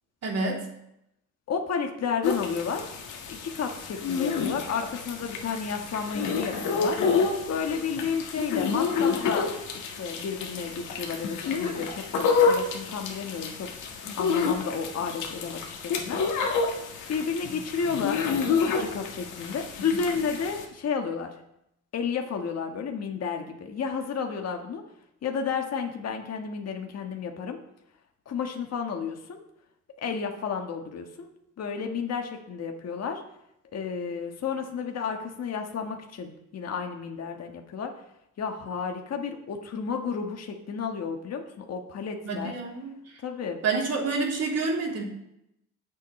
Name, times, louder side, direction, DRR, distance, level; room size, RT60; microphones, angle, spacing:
voice 1, 0.2-0.7 42.2-43.2 43.6-45.0, right 3 dB, 55° right, -1 dB, 3.2 m, -28 dB
voice 2, 1.5-2.9 3.3-16.6 17.1-18.3 18.6-21.4 21.9-24.8 25.2-27.6 28.2-29.4 30.0-31.3 31.6-33.2 33.7-37.9 38.4-42.5 43.2-43.6, left 6 dB, 55° left, 3 dB, 1.5 m, -32 dB
sound 1, 2.2-20.6, left 5 dB, 85° left, 1.8 m, -29 dB
19.5 x 7.6 x 3.2 m, 0.81 s
cardioid pair, 90°, 30 cm